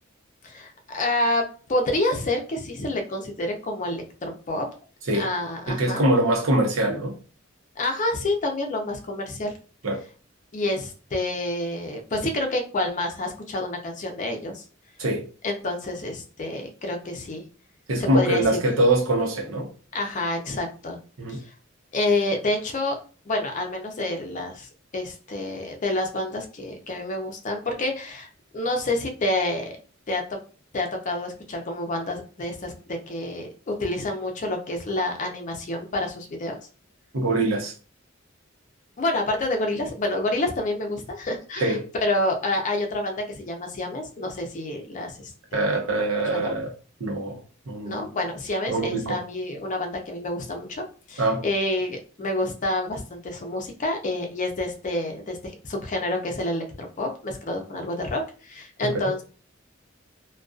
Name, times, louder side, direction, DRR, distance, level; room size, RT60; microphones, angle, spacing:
voice 1, 0.4-4.7 5.1-6.0 7.8-9.5 10.5-14.6 15.4-17.4 18.0-18.6 19.9-21.0 21.3-21.4 21.9-23.0 23.3-28.3 28.5-29.7 30.1-30.4 30.7-36.5 39.0-45.7 46.3-46.5 47.8-59.2, left 1 dB, 40° left, 0.5 m, -28 dB
voice 2, 5.7-7.2 9.8-10.0 15.0-15.3 17.9-19.7 21.2-21.4 37.1-37.7 41.6-41.8 45.5-46.7 47.0-47.4 47.7-48.1 48.7-49.2 51.2-51.4 58.8-59.1, right 1 dB, 85° right, 0.7 m, -23 dB
2.4 x 2.2 x 2.3 m
head